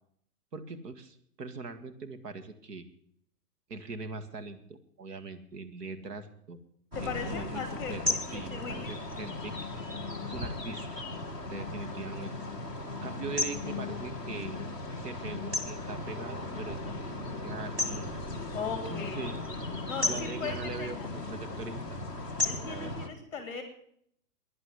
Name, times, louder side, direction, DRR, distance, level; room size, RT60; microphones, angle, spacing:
voice 1, 0.5-2.8 3.7-4.6 5.0-6.6 7.0-7.6 7.9-8.0 8.3-8.6 8.9-9.5 10.2-11.0 11.5-12.3 13.0-14.6 15.0-18.1 18.9-19.4 20.0-22.0 22.7-22.9, right 4 dB, 80° right, 9 dB, 1.9 m, -41 dB
sound 1, 6.9-23.1, left 2 dB, 10° right, 0.8 m, -36 dB
voice 2, 7.0-8.2 8.5-9.0 18.5-19.3 19.9-21.1 22.4-23.6, left 5 dB, 5° left, 6 dB, 2.6 m, -38 dB
11.0 x 9.7 x 9.4 m, 0.66 s
hypercardioid pair, 170°, 47 cm